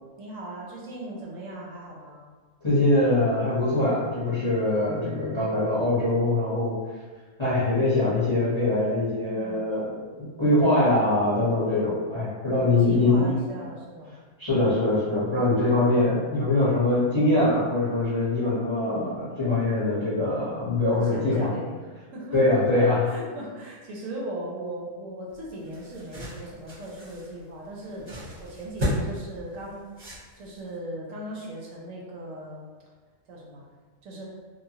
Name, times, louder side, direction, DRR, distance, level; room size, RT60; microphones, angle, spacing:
voice 1, 0.2-2.2 5.3-5.7 9.3-9.7 12.4-14.2 18.9-19.3 20.9-21.8 22.1-28.1 28.4-29.9 30.4-32.6 33.3-33.6 34.0-34.2, right 1 dB, 70° right, -3 dB, 0.9 m, -38 dB
voice 2, 2.6-6.8 7.4-13.3 14.4-21.5 22.3-23.0, left 2 dB, 30° left, -11 dB, 0.6 m, -23 dB
sound 1, 25.3-30.7, equal, 35° right, 0.7 m, -35 dB
3.0 x 2.1 x 2.7 m, 1.4 s
omnidirectional pair, 1.5 m